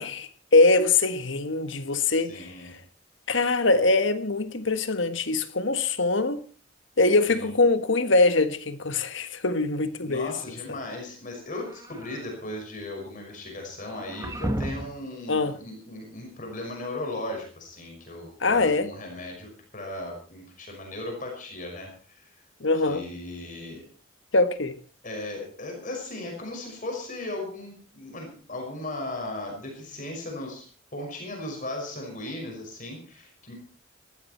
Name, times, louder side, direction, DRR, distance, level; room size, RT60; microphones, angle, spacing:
voice 1, 0.0-2.5 3.3-6.4 7.0-10.3 10.7-10.8 15.3-15.5 18.4-18.9 22.6-23.0 24.3-24.7, left 3 dB, 65° left, 1.5 m, -23 dB
voice 2, 2.2-2.8 7.3-7.5 10.0-22.4 22.8-23.9 25.0-30.7 30.9-33.5, left 2 dB, 40° left, 5.8 m, -37 dB
sound 1, 11.5-12.4 13.8-15.0, right 1 dB, 15° right, 1.4 m, -34 dB
19.0 x 15.0 x 4.4 m
head